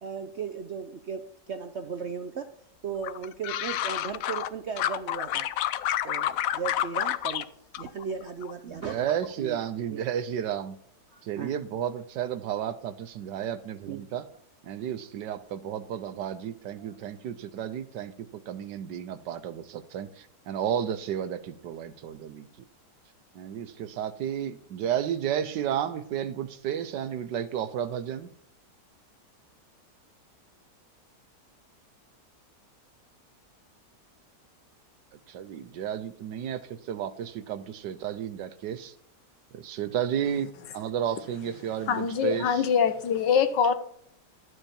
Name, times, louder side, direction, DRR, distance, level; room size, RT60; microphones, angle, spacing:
voice 1, 0.0-2.5 2.8-5.5 6.0-7.5 7.8-9.6 9.9-10.0 11.1-11.5 13.9-14.0 16.8-16.9, right 6 dB, 55° right, 8 dB, 0.8 m, -36 dB
sound 1, 3.0-4.5 4.8-7.5 7.7-8.5 8.8-9.3, left 12 dB, 70° left, 0.9 m, -29 dB
voice 2, 8.7-10.8 11.2-14.2 14.6-22.7 23.3-28.3 35.1-38.9 39.5-42.6, right 9 dB, 90° right, 12 dB, 1.4 m, -32 dB
voice 3, 41.9-43.7, left 7 dB, 90° left, 11 dB, 1.6 m, -24 dB
12.0 x 8.0 x 4.4 m, 0.70 s
omnidirectional pair, 1.8 m